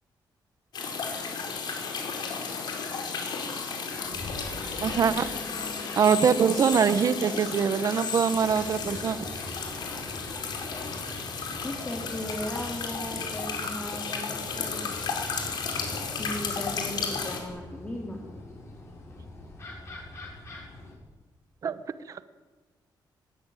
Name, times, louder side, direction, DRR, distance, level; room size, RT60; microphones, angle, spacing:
sound 1, 0.7-17.4, left 5 dB, 60° left, 4.8 m, -33 dB
sound 2, 3.9-20.9, left 1 dB, 35° left, 7.4 m, -44 dB
voice 1, 4.8-5.3 6.0-9.2 21.6-21.8 22.1-22.2, right 7 dB, 45° right, 13 dB, 1.0 m, -23 dB
voice 2, 11.6-14.9 16.2-18.2, left 1 dB, 15° left, 0 dB, 2.6 m, -37 dB
20.5 x 18.5 x 9.2 m, 1.2 s
wide cardioid pair, 165°, 8 cm